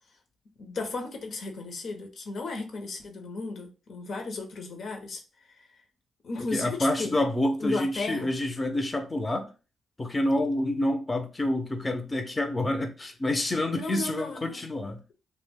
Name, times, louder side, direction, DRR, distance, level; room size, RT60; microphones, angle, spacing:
voice 1, 0.6-5.2 5.6-5.7 6.2-7.2 7.6-8.3 13.8-14.6, left 3 dB, 65° left, 0.7 m, -34 dB
voice 2, 6.5-9.5 10.0-15.0, left 1 dB, 25° left, 0.5 m, -28 dB
2.5 x 2.1 x 3.4 m
supercardioid pair, 60°, 0 cm